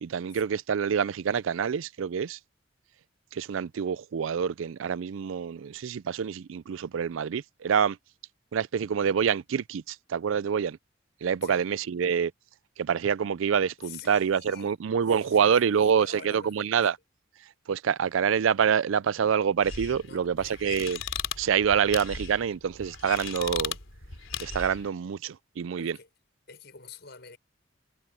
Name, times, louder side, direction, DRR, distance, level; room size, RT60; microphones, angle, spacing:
voice 1, 0.0-2.4 3.3-8.0 8.5-10.8 11.2-12.3 12.8-17.0 17.7-21.0 21.4-23.8 24.4-26.0, right 7 dB, 75° right, 0.4 m, -26 dB
voice 2, 13.8-14.7 15.1-16.9 20.0-20.6 25.8-26.1 26.5-27.4, left 5 dB, 55° left, 6.8 m, -47 dB
sound 1, 19.6-24.9, left 7 dB, 80° left, 3.3 m, -37 dB
head